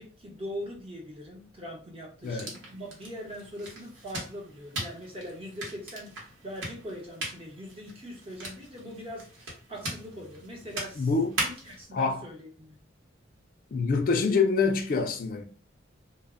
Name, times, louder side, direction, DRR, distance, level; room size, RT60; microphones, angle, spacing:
voice 1, 0.0-11.1 11.4-12.8, equal, 30° right, 0.8 m, -42 dB
sound 1, 2.2-11.8, right 1 dB, 70° right, 1.0 m, -39 dB
voice 2, 11.0-11.3 11.9-12.2 13.7-15.4, left 4 dB, 45° left, 0.3 m, -25 dB
2.1 x 2.0 x 3.5 m
head